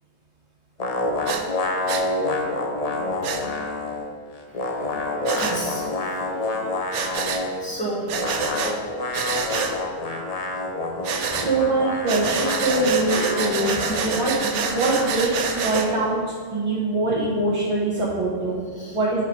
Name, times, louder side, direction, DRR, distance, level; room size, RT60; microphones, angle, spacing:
sound 1, 0.8-4.1 4.3-7.7 8.1-16.2, left 2 dB, 40° left, 0.7 m, -28 dB
Breathing, 1.3-1.4 1.9-2.1 3.2-3.4 5.3-5.6 6.9-7.4 8.1-8.7 9.1-9.7 11.0-11.5 12.1-15.9, right 5 dB, 80° right, 1.0 m, -27 dB
voice 1, 5.1-5.9 7.6-8.1 13.7-14.2 14.4-14.6 18.8-19.2, right 2 dB, 5° left, -7 dB, 1.9 m, -32 dB
voice 2, 11.3-14.3 14.7-16.2 16.5-18.6 18.9-19.2, right 2 dB, 30° right, -6 dB, 0.9 m, -23 dB
7.5 x 4.7 x 4.6 m, 2.1 s
omnidirectional pair, 1.2 m